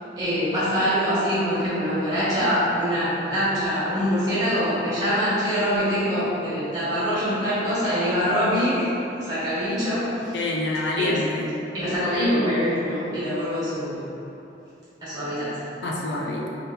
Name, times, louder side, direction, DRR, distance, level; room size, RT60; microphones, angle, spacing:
voice 1, 0.2-10.4 11.0-11.2 11.7-14.0 15.0-15.6, equal, 20° right, -13 dB, 1.1 m, -24 dB
voice 2, 10.3-11.5 15.8-16.5, left 2 dB, 70° left, -2 dB, 0.4 m, -27 dB
2.7 x 2.2 x 3.6 m, 2.8 s
head